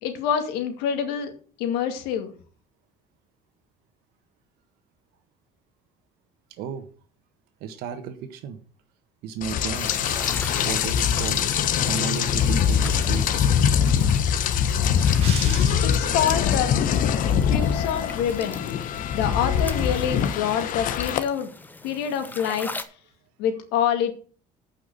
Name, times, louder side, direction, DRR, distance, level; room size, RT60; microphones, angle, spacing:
voice 1, 0.0-1.3 1.6-2.3 15.8-16.7 17.5-18.6 19.1-21.5 21.8-22.7 23.4-24.1, left 8 dB, 90° left, 6 dB, 2.3 m, -26 dB
voice 2, 6.6-6.9 7.6-8.6 9.2-9.9 10.6-11.4 11.9-13.5, right 8 dB, 75° right, 8 dB, 1.5 m, -33 dB
Rain, 9.4-21.2, left 8 dB, 55° left, 1.1 m, -23 dB
sound 1, 9.7-22.8, left 2 dB, 10° left, 1.0 m, -40 dB
sound 2, 15.2-16.5, right 5 dB, 40° right, 2.9 m, -36 dB
8.8 x 5.9 x 8.0 m, 0.41 s
cardioid pair, 125°, 16 cm